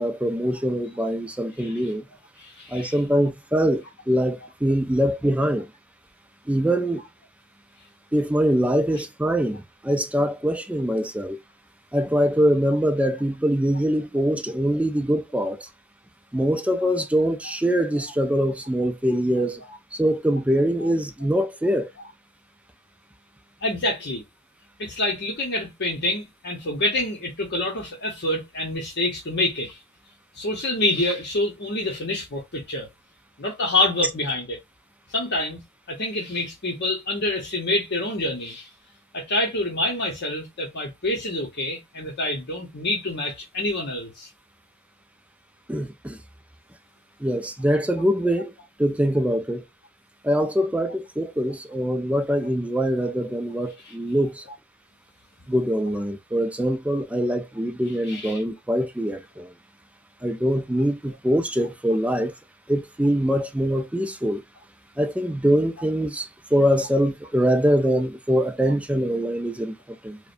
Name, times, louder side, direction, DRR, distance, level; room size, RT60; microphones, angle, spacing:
voice 1, 0.0-2.0 2.7-5.7 6.5-7.0 8.1-11.4 11.9-15.7 16.3-19.6 19.9-21.9 45.7-46.2 47.2-48.5 48.8-49.6 50.2-54.4 55.5-59.5 60.2-62.3 62.7-64.4 65.0-70.2, equal, 5° right, 0.4 m, -23 dB
voice 2, 2.4-2.9 18.0-18.1 20.8-20.9 23.6-24.2 24.8-29.8 30.3-32.9 33.4-34.6 35.1-35.6 35.9-38.7 39.1-44.3 53.8-53.9 58.1-58.4, left 1 dB, 55° left, 1.0 m, -27 dB
4.8 x 2.2 x 2.6 m
head